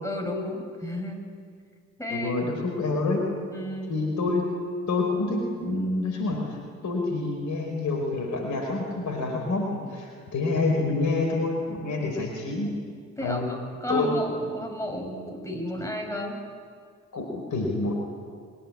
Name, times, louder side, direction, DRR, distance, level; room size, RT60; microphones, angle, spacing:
voice 1, 0.0-1.2 2.0-2.3 3.5-4.0 12.0-12.3 13.2-16.4, left 1 dB, 10° left, 2 dB, 7.2 m, -32 dB
voice 2, 2.1-3.3 3.9-4.5 4.9-6.6 6.8-12.7 13.2-13.5 13.9-14.1 17.1-18.1, left 3 dB, 50° left, 2 dB, 4.8 m, -27 dB
22.0 x 20.5 x 9.8 m, 2.1 s
figure-of-eight pair, 40°, 38 cm